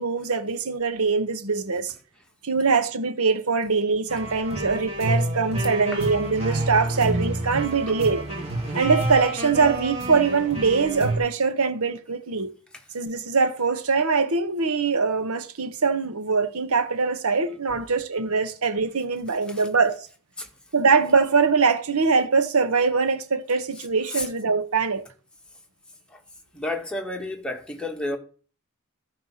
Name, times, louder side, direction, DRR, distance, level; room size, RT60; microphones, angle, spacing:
voice 1, 0.0-1.9 2.4-8.2 8.7-12.5 12.9-20.1 20.7-25.1, right 4 dB, 75° right, 1.2 m, -23 dB
sound 1, 4.1-11.2, right 1 dB, 30° right, 3.8 m, -29 dB
voice 2, 17.4-18.4 19.3-19.7 20.4-20.5 23.8-24.3 26.1-26.2 26.5-28.2, left 1 dB, 5° left, 1.8 m, -34 dB
13.5 x 4.7 x 5.8 m
head